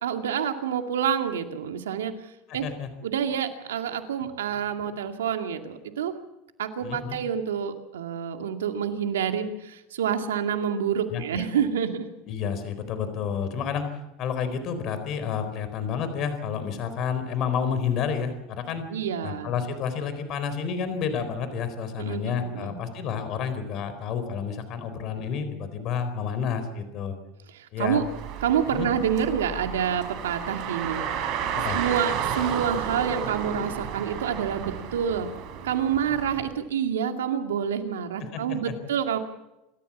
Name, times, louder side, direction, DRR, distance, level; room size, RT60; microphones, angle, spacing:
voice 1, 0.0-2.1 2.5-2.7 3.0-6.1 6.6-12.1 18.9-19.5 22.0-22.8 27.5-28.0 28.4-31.0 31.7-35.3 35.6-39.2, right 8 dB, 90° right, 6 dB, 2.2 m, -28 dB
voice 2, 2.5-2.9 6.8-7.2 11.1-11.4 12.3-13.9 14.2-18.8 19.2-27.1 27.7-28.0 28.7-28.9 31.5-31.8 38.2-38.7, left 7 dB, 50° left, 10 dB, 4.2 m, -30 dB
Car, 27.9-36.5, right 8 dB, 60° right, 4.7 m, -32 dB
27.5 x 14.0 x 7.3 m, 0.93 s
hypercardioid pair, 95°, 0 cm